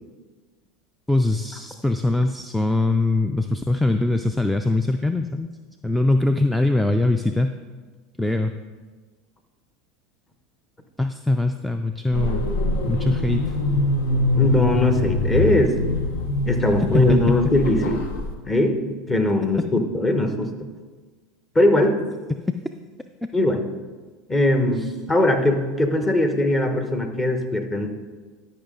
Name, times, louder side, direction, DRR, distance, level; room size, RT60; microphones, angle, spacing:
voice 1, 1.1-5.5 5.8-7.6 8.2-8.5 11.0-12.5 12.9-13.5 16.9-17.4 24.8-24.9, left 2 dB, ahead, 8 dB, 0.4 m, -22 dB
sound 1, 12.1-18.3, left 2 dB, 75° left, 1.0 m, -24 dB
voice 2, 14.3-15.7 16.5-18.1 18.4-20.5 21.5-22.0 23.3-23.6 24.3-28.0, left 1 dB, 20° left, 6 dB, 1.1 m, -20 dB
12.5 x 5.5 x 3.8 m, 1.4 s
hypercardioid pair, 100°, 0 cm